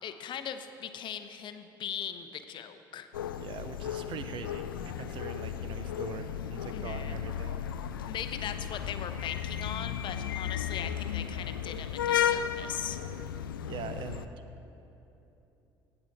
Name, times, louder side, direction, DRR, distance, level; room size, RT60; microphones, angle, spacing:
voice 1, 0.0-3.1 6.5-7.2 8.1-13.0, left 9 dB, 45° left, 9 dB, 0.7 m, -39 dB
sound 1, 3.1-14.3, left 9 dB, 75° left, 0.4 m, -34 dB
voice 2, 3.4-4.6 5.0-7.6 13.6-14.3, right 6 dB, 45° right, 9 dB, 0.9 m, -42 dB
16.5 x 7.8 x 4.7 m, 3.0 s
figure-of-eight pair, 55°, 11 cm